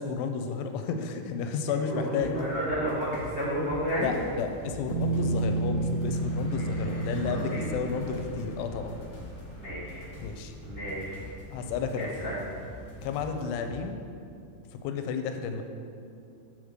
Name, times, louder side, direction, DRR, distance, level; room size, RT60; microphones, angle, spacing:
voice 1, 0.0-2.3 4.0-8.9 10.2-10.5 11.5-12.1 13.0-14.0 14.7-15.6, left 5 dB, 85° left, 6 dB, 2.6 m, -32 dB
voice 2, 1.8-4.1 6.5-7.7 9.6-10.1 10.6-11.2 12.0-12.4, right 1 dB, 50° right, -12 dB, 1.3 m, -32 dB
sound 1, 2.2-13.9, equal, 40° left, 2.2 m, -44 dB
sound 2, 4.4-13.5, equal, 65° left, 1.2 m, -47 dB
Bass guitar, 4.9-9.3, right 3 dB, 85° right, 2.7 m, -31 dB
7.4 x 3.6 x 6.4 m, 2.5 s
omnidirectional pair, 4.8 m